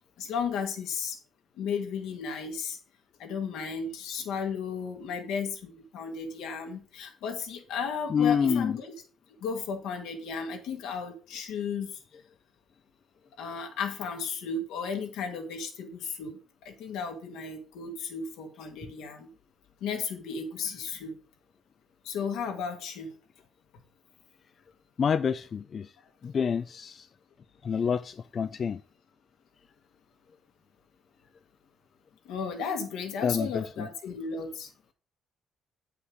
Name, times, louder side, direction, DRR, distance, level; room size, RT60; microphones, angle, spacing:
voice 1, 0.2-1.2 1.6-2.8 3.2-8.9 9.4-12.0 13.4-16.4 16.6-19.3 19.8-21.2 22.0-23.1 32.3-34.7, left 5 dB, 80° left, 1.9 m, -34 dB
voice 2, 8.1-8.8 25.0-25.9 26.2-27.1 27.6-28.8 33.2-33.9, left 7 dB, 50° left, 0.4 m, -27 dB
7.9 x 5.7 x 5.1 m
supercardioid pair, 75°, 0 cm